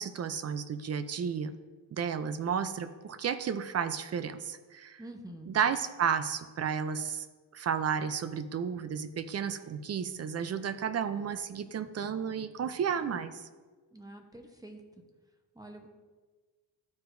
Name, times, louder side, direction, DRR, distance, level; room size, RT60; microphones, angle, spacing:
voice 1, 0.0-1.5 1.9-5.0 5.5-7.3 7.5-13.5, right 7 dB, 35° right, 12 dB, 0.4 m, -32 dB
voice 2, 5.0-5.5 13.9-14.8 15.5-15.9, right 1 dB, 10° right, 4 dB, 0.9 m, -47 dB
12.5 x 4.7 x 2.6 m, 1.4 s
cardioid pair, 110°, 48 cm